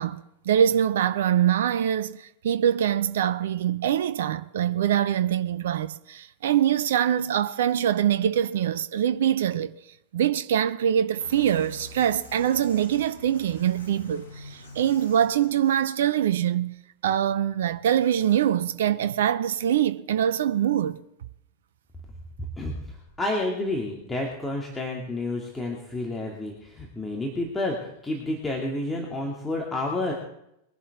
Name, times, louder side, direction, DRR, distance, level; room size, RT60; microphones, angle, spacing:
voice 1, 0.0-9.7 10.1-16.8 17.0-21.0, right 10 dB, 60° right, 0.6 m, -24 dB
sound 1, 11.2-16.0, left 1 dB, 80° left, 4.2 m, -46 dB
voice 2, 23.2-30.1, left 2 dB, 10° left, 2.3 m, -30 dB
22.0 x 11.0 x 3.6 m
figure-of-eight pair, 90°, 0 cm